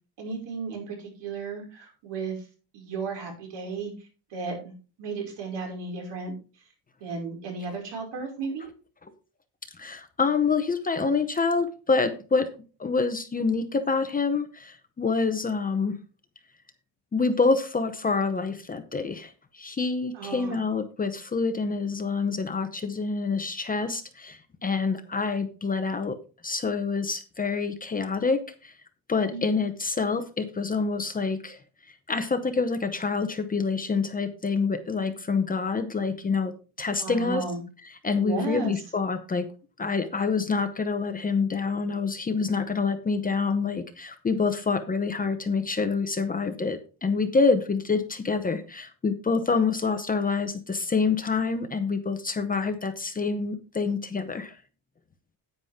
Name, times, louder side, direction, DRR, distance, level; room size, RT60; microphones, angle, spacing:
voice 1, 0.2-2.3 2.7-3.9 4.3-4.7 5.0-6.3 7.0-8.7 20.1-20.6 29.3-29.6 37.0-37.6 38.2-38.7, right 4 dB, 75° right, 1 dB, 5.4 m, -34 dB
voice 2, 9.8-12.5 12.8-16.0 17.1-26.2 26.4-28.7 29.1-31.6 32.1-36.5 36.8-37.4 38.0-39.5 39.8-54.6, left 4 dB, 20° left, 9 dB, 0.8 m, -27 dB
9.7 x 9.4 x 3.6 m, 0.34 s
cardioid pair, 170°, 43 cm